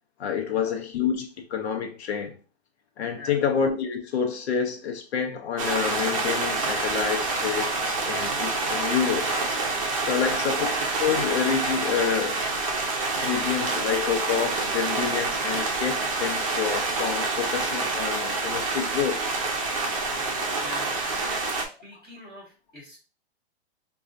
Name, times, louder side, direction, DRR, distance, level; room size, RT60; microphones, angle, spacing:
voice 1, 0.2-2.4 3.0-9.3 10.1-10.7 11.0-12.4 13.2-19.2, left 7 dB, 75° left, 0.7 m, -28 dB
sound 1, 5.6-21.7, right 3 dB, 30° right, 0.6 m, -27 dB
voice 2, 10.1-10.4 20.6-23.0, left 1 dB, 5° left, 0.6 m, -43 dB
4.1 x 2.3 x 2.5 m
hypercardioid pair, 170°, 33 cm